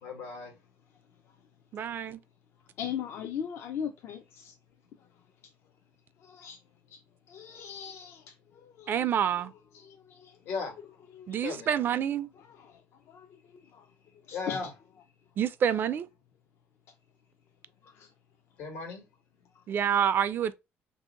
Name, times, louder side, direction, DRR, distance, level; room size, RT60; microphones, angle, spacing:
voice 1, 0.0-0.5 10.4-10.8 11.4-11.7 14.3-14.7 18.6-19.0, left 5 dB, 85° left, 1.4 m, -36 dB
voice 2, 1.7-2.2 8.9-9.5 11.3-12.3 15.4-16.1 19.7-20.5, right 9 dB, 50° right, 0.3 m, -27 dB
voice 3, 2.8-4.6 6.2-6.6 6.9-7.0 7.3-9.1 9.7-10.4 11.1-11.4 12.4-12.8 13.1-13.8 14.3-14.7 17.8-18.1, left 8 dB, 65° left, 0.5 m, -40 dB
3.1 x 2.7 x 3.7 m
cardioid pair, 120°, 5 cm